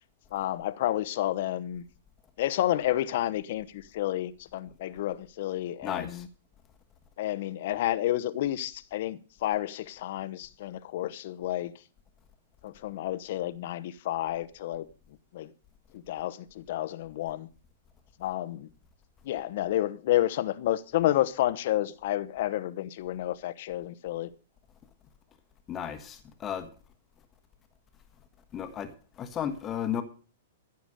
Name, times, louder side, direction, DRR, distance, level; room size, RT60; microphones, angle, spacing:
voice 1, 0.3-1.8 2.4-6.3 7.2-11.7 12.6-14.9 15.3-15.5 15.9-17.5 18.2-18.7 19.2-24.3, left 13 dB, 60° left, 1.0 m, -30 dB
voice 2, 5.8-6.2 25.7-26.7 28.5-28.9 29.2-30.0, left 9 dB, 25° left, 1.4 m, -34 dB
14.5 x 7.0 x 6.4 m
hypercardioid pair, 140°, 0 cm